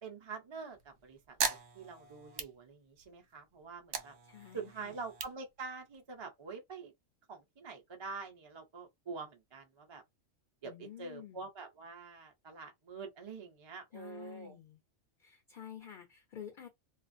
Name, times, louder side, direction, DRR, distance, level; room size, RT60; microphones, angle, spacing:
voice 1, 0.0-4.1 4.5-6.9 7.3-10.0 10.6-14.6, right 4 dB, 40° right, 0.4 m, -46 dB
sound 1, 0.7-3.2 3.6-6.2, right 6 dB, 65° right, 0.8 m, -40 dB
voice 2, 4.3-4.9 10.6-11.4 13.9-14.8 15.2-16.7, left 9 dB, 65° left, 0.5 m, -50 dB
2.4 x 2.4 x 2.5 m
omnidirectional pair, 1.4 m